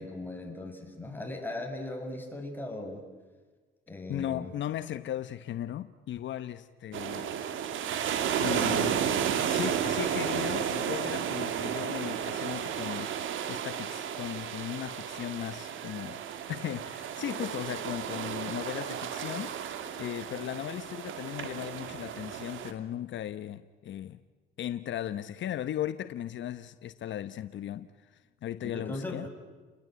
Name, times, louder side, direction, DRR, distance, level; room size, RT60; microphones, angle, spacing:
voice 1, 0.0-3.0 3.9-4.5 28.6-29.3, left 2 dB, 10° left, 6.8 m, -38 dB
voice 2, 4.1-7.3 8.4-9.0 9.5-16.2 16.5-24.2 24.6-29.3, left 11 dB, 70° left, 0.9 m, -37 dB
sound 1, 6.9-22.7, right 8 dB, 80° right, 2.5 m, -33 dB
30.0 x 21.0 x 9.4 m
cardioid pair, 90°, 20 cm